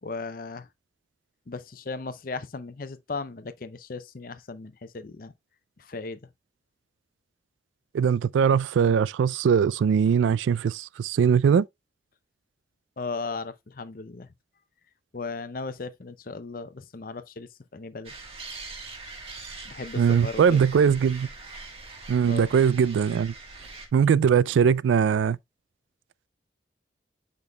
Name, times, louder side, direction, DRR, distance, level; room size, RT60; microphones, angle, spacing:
voice 1, 0.0-0.7 1.5-5.3 5.8-6.3 13.0-14.3 15.1-18.1 19.6-20.6 22.2-22.5, left 3 dB, 50° left, 0.6 m, -36 dB
voice 2, 7.9-11.6 20.0-21.3 22.1-23.3 23.9-25.4, right 7 dB, 85° right, 0.3 m, -21 dB
sound 1, 18.0-23.9, right 3 dB, 30° right, 1.5 m, -42 dB
8.2 x 5.3 x 2.2 m
head